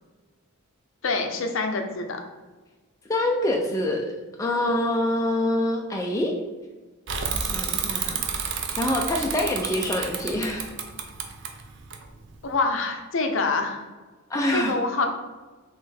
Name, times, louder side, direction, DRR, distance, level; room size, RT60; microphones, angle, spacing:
voice 1, 1.0-2.2 12.4-13.8 14.5-15.1, left 3 dB, 60° left, 4 dB, 0.6 m, -26 dB
voice 2, 3.1-4.1 4.4-6.3 7.3-8.2 8.8-10.7 14.3-14.8, left 1 dB, 15° left, 0 dB, 0.3 m, -25 dB
Bicycle / Mechanisms, 7.1-12.5, right 6 dB, 55° right, 0.5 m, -30 dB
4.0 x 3.1 x 4.2 m, 1.3 s
head